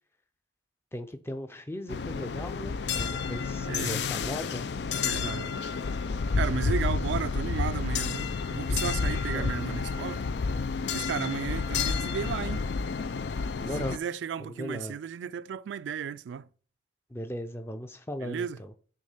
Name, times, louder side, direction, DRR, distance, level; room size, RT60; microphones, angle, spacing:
voice 1, 0.9-4.7 9.0-9.8 13.6-14.0 14.5-15.0 17.1-18.7, left 1 dB, 15° left, 0.5 m, -38 dB
sound 1, 1.9-14.0, left 5 dB, 70° left, 0.4 m, -30 dB
voice 2, 3.7-4.0 5.0-5.5 6.4-10.2 10.9-12.7 13.7-16.5 18.2-18.6, right 7 dB, 90° right, 0.3 m, -34 dB
6.3 x 3.6 x 5.6 m
head